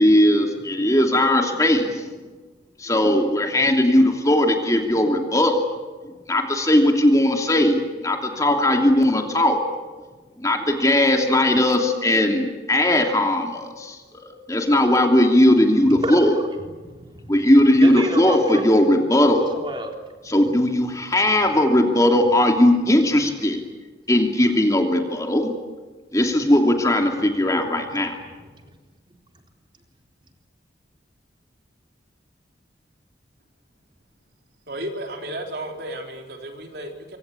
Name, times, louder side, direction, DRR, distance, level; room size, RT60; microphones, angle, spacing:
voice 1, 0.0-2.1 2.8-5.7 6.0-9.6 10.4-16.3 17.3-19.5 20.3-23.6 24.1-25.5 26.1-28.1, left 1 dB, 20° left, 3 dB, 2.9 m, -18 dB
voice 2, 15.9-16.3 16.7-17.3 17.8-18.7 19.4-19.9 23.2-23.3 28.6-28.7, right 1 dB, 25° right, 2 dB, 3.8 m, -29 dB
voice 3, 34.7-37.2, right 1 dB, 60° right, 3 dB, 3.7 m, -33 dB
26.0 x 25.0 x 8.5 m, 1.3 s
head